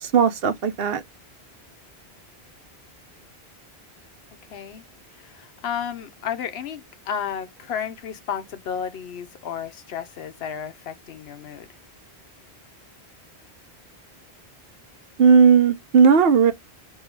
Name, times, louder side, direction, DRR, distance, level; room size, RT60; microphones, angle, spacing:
voice 1, 0.0-1.0 15.2-16.5, right 6 dB, 65° right, 0.9 m, -16 dB
voice 2, 4.5-4.8 5.1-11.7, left 8 dB, 70° left, 0.9 m, -32 dB
3.5 x 2.4 x 4.4 m
omnidirectional pair, 1.1 m